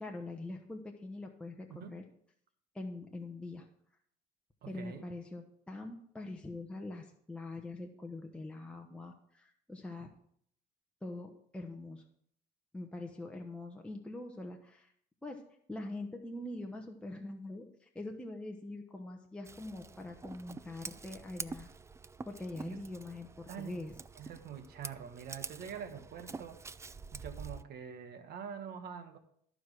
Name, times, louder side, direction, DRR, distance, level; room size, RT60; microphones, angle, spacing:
voice 1, 0.0-2.0 2.7-3.7 4.7-10.1 11.0-12.0 12.7-14.9 15.2-15.4 15.7-21.7 22.2-23.9, left 2 dB, 5° left, 1 dB, 1.1 m, -43 dB
voice 2, 1.7-2.0 4.6-5.0 22.6-22.8 23.5-23.9 24.2-26.6 27.1-29.2, right 7 dB, 65° right, 8 dB, 1.4 m, -45 dB
Scissors, 19.5-27.6, right 4 dB, 15° right, 0.4 m, -47 dB
13.5 x 4.9 x 6.0 m, 0.65 s
cardioid pair, 110°, 17 cm